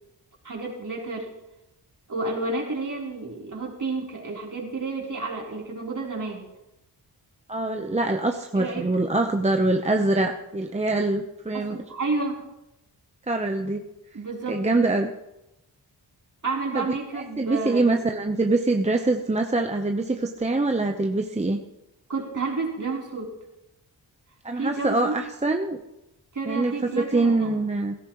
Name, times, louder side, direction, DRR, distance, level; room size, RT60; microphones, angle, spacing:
voice 1, 0.4-1.3 2.1-6.5 8.5-8.9 11.5-12.5 14.1-14.6 16.4-18.0 22.1-23.3 24.5-25.2 26.3-27.6, right 3 dB, 50° right, -3 dB, 3.9 m, -30 dB
voice 2, 7.5-11.8 13.3-13.8 14.5-15.1 16.7-16.8 17.1-21.6 24.4-25.8 26.5-28.0, right 2 dB, 15° right, 4 dB, 0.9 m, -24 dB
16.5 x 13.5 x 3.1 m, 0.91 s
cardioid pair, 65°, 40 cm